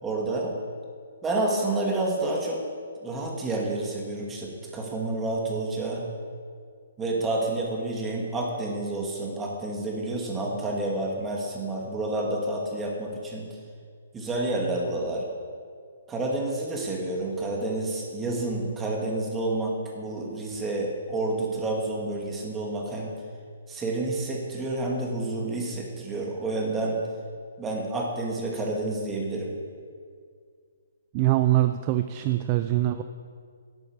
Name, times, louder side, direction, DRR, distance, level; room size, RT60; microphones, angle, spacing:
voice 1, 0.0-0.5 1.2-2.6 3.0-6.0 7.0-13.6 14.1-15.3 16.1-23.1 23.7-27.0 27.6-29.5, right 2 dB, 15° right, -1 dB, 2.3 m, -29 dB
voice 2, 31.1-33.0, right 15 dB, 30° right, 9 dB, 0.4 m, -23 dB
12.0 x 7.9 x 7.3 m, 2.1 s
hypercardioid pair, 145°, 0 cm